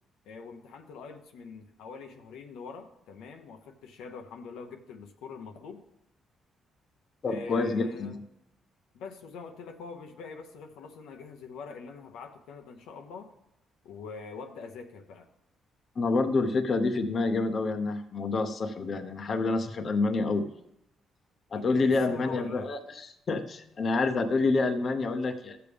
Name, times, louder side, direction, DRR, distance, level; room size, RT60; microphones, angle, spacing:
voice 1, 0.2-5.8 7.3-8.2 8.9-13.3 13.8-15.3 21.5-22.7, left 5 dB, 90° left, 4 dB, 0.9 m, -43 dB
voice 2, 7.2-8.2 16.0-20.5 21.5-25.6, left 3 dB, 45° left, 8 dB, 0.8 m, -28 dB
15.0 x 6.9 x 3.4 m, 0.80 s
cardioid pair, 90°, 0 cm